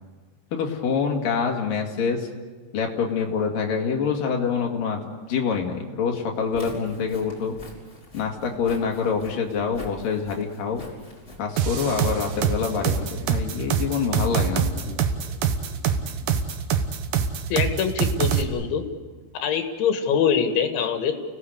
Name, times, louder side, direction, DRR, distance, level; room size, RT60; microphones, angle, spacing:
voice 1, 0.5-2.3 2.7-7.5 8.1-10.8 11.4-15.0, left 6 dB, 50° left, 1 dB, 3.5 m, -26 dB
Walk footsteps, 6.4-13.2, equal, 15° left, 4.5 m, -44 dB
sound 1, 11.6-18.4, right 7 dB, 70° right, 2.1 m, -24 dB
voice 2, 17.5-18.9 19.4-21.3, left 7 dB, 70° left, 5 dB, 4.2 m, -24 dB
30.0 x 18.0 x 8.1 m, 1.4 s
omnidirectional pair, 5.6 m